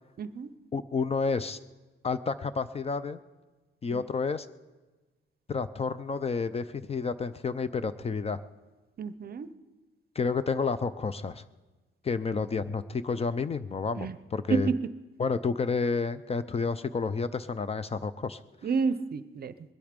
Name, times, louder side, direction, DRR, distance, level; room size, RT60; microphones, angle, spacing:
voice 1, 0.2-0.5 9.0-9.5 14.0-14.1 14.5-14.8 18.6-19.5, right 5 dB, 50° right, 13 dB, 0.6 m, -29 dB
voice 2, 0.7-1.6 2.0-3.2 3.8-4.5 5.5-8.4 10.2-11.4 12.0-14.7 15.2-18.4, left 4 dB, 30° left, 13 dB, 0.5 m, -30 dB
21.0 x 12.0 x 5.2 m, 1.2 s
wide cardioid pair, 160°, 20 cm